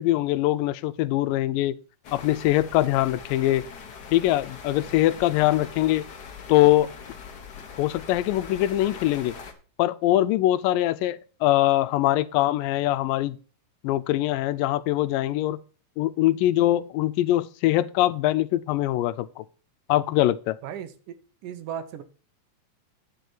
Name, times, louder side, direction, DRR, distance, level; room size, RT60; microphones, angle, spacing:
voice 1, 0.0-1.8 2.1-3.6 4.1-6.0 6.5-6.9 7.8-9.3 9.8-13.4 13.8-15.6 16.0-19.4 19.9-20.6, left 15 dB, 85° left, 2.3 m, -22 dB
sound 1, 2.0-9.5, left 6 dB, 60° left, 1.0 m, -42 dB
voice 2, 20.6-22.0, right 9 dB, 75° right, 2.4 m, -37 dB
10.0 x 6.7 x 4.5 m
omnidirectional pair, 3.9 m